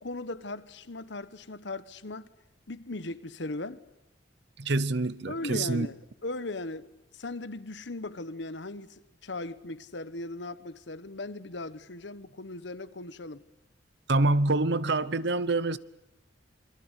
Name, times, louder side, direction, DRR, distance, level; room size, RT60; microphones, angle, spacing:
voice 1, 0.0-2.3 2.7-3.8 5.3-13.4, left 2 dB, 65° left, 1.2 m, -38 dB
voice 2, 4.6-5.9 14.1-15.8, right 2 dB, 60° right, 0.9 m, -26 dB
27.5 x 23.0 x 8.3 m
head